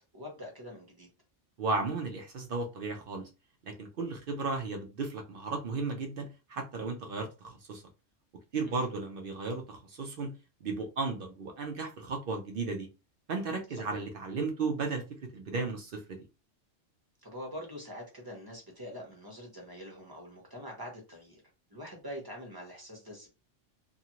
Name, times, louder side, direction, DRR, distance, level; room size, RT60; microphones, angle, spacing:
voice 1, 0.1-1.1 8.6-8.9 13.8-13.9 17.2-21.4 21.7-23.3, equal, 20° right, 0.8 m, -44 dB
voice 2, 1.6-3.3 3.7-7.8 8.5-10.3 10.6-12.9 13.3-16.2, right 3 dB, 60° right, 0.6 m, -35 dB
2.6 x 2.4 x 2.9 m
omnidirectional pair, 1.3 m